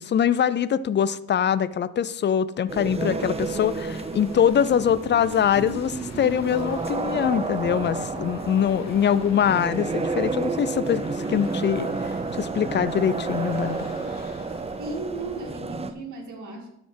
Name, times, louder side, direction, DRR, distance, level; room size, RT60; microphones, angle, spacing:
voice 1, 0.0-11.9 12.4-13.8, left 8 dB, 35° left, 16 dB, 0.5 m, -23 dB
sound 1, 2.7-15.9, right 3 dB, 20° right, 0.6 m, -30 dB
sound 2, 2.9-15.6, left 5 dB, 65° left, 1.2 m, -46 dB
voice 2, 14.8-16.7, right 3 dB, 75° right, 1 dB, 2.3 m, -35 dB
12.5 x 4.2 x 5.3 m, 0.82 s
cardioid pair, 90°, 30 cm